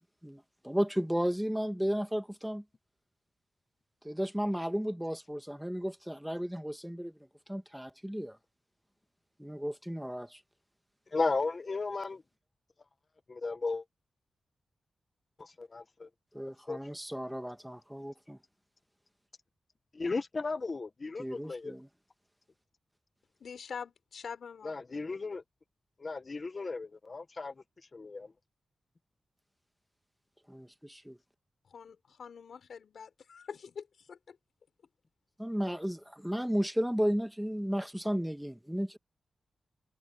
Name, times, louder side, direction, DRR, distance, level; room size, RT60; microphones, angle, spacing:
voice 1, 0.2-2.6 4.0-7.2 7.5-8.4 9.4-10.4 16.3-18.4 21.2-21.9 30.5-31.2 35.4-39.0, equal, 5° right, 1.5 m, -34 dB
voice 2, 11.1-12.2 13.3-13.8 15.6-16.1 16.7-16.8 19.9-21.7 24.6-25.4 26.0-27.5 27.9-28.3, left 3 dB, 30° left, 1.0 m, -35 dB
voice 3, 23.4-24.8 31.7-34.4, left 6 dB, 65° left, 6.2 m, -45 dB
wide cardioid pair, 165°, 0 cm